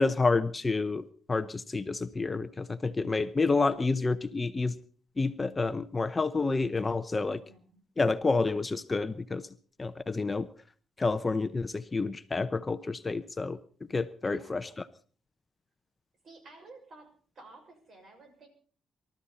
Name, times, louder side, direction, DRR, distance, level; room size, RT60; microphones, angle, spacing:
voice 1, 0.0-4.7 5.2-7.4 8.0-9.5 9.8-10.5 11.0-13.6 13.9-14.7, left 3 dB, 25° left, 12 dB, 0.8 m, -29 dB
voice 2, 7.4-7.8 14.2-14.9 16.2-17.1 17.3-18.5, right 3 dB, 50° right, 5 dB, 6.3 m, -53 dB
25.0 x 13.0 x 4.2 m, 0.42 s
cardioid pair, 90°, 0 cm